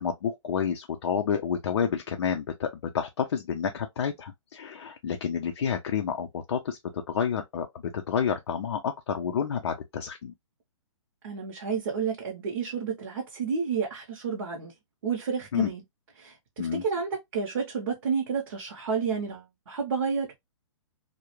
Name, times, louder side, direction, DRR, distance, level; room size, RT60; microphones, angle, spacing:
voice 1, 0.0-7.7 7.9-10.3 15.5-15.7 16.6-16.8, left 7 dB, 55° left, 0.4 m, -29 dB
voice 2, 11.2-14.7 15.0-15.8 16.2-20.3, right 5 dB, 45° right, 0.7 m, -30 dB
2.3 x 2.1 x 2.9 m
hypercardioid pair, 165°, 16 cm